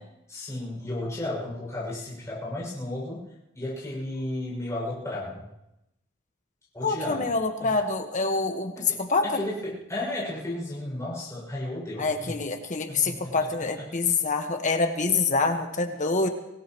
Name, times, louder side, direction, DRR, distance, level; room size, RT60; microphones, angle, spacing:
voice 1, 0.3-5.5 6.7-7.3 7.6-7.7 8.8-12.3 12.9-13.9, left 1 dB, 15° left, -6 dB, 6.3 m, -34 dB
voice 2, 6.8-9.3 12.0-16.3, left 4 dB, 40° left, 5 dB, 1.4 m, -26 dB
25.0 x 17.0 x 3.1 m, 0.87 s
head